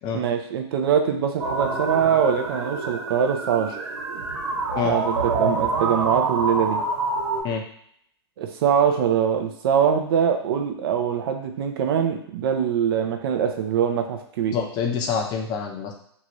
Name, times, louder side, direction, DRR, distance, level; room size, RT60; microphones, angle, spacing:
voice 1, 0.1-3.8 4.8-6.8 8.4-14.6, right 8 dB, 55° right, 5 dB, 0.5 m, -23 dB
sound 1, 1.4-7.4, right 3 dB, 70° right, 1.0 m, -26 dB
voice 2, 14.5-15.9, left 6 dB, 30° left, 2 dB, 0.5 m, -26 dB
2.7 x 2.4 x 3.0 m, 0.67 s
hypercardioid pair, 125°, 15 cm